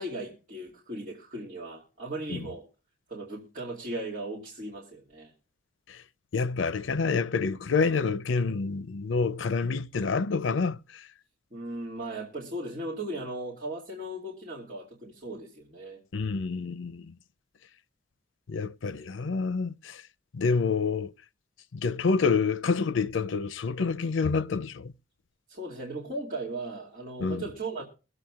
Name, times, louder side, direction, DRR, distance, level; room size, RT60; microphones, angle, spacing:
voice 1, 0.0-2.7 3.1-5.3 11.5-16.0 25.5-27.8, right 2 dB, 40° right, 2.4 m, -37 dB
voice 2, 6.3-11.1 16.1-17.1 18.5-20.0 20.3-21.1 21.7-24.9 27.2-27.4, left 4 dB, 85° left, 0.5 m, -28 dB
22.5 x 7.9 x 2.4 m
head